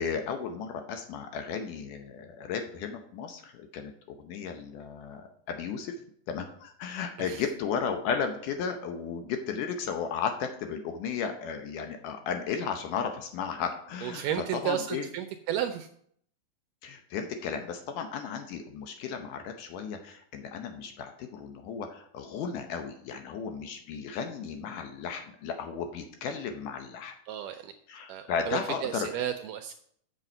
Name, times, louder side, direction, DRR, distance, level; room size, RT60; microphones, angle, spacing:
voice 1, 0.0-6.0 6.3-14.2 14.5-15.1 16.8-27.1 27.9-29.1, left 6 dB, 75° left, 6 dB, 2.1 m, -34 dB
voice 2, 14.0-15.9 27.3-27.7 28.1-29.7, right 10 dB, 80° right, 7 dB, 1.9 m, -33 dB
7.6 x 6.5 x 5.4 m, 0.64 s
omnidirectional pair, 4.2 m